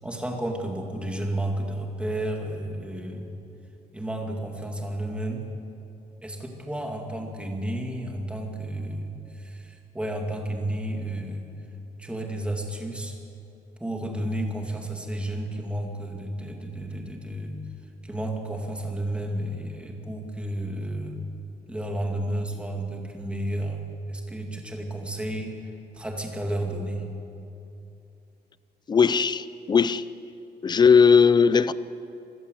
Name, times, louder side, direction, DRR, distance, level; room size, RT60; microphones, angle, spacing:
voice 1, 0.0-3.3 3.9-5.5 6.2-11.4 12.0-13.2 13.8-17.6 18.0-21.2 21.7-25.6 25.9-27.1, right 1 dB, 5° right, 2.3 m, -32 dB
voice 2, 28.9-30.0 30.6-31.7, left 6 dB, 25° left, 0.5 m, -18 dB
26.5 x 16.0 x 7.8 m
wide cardioid pair, 175°, 17 cm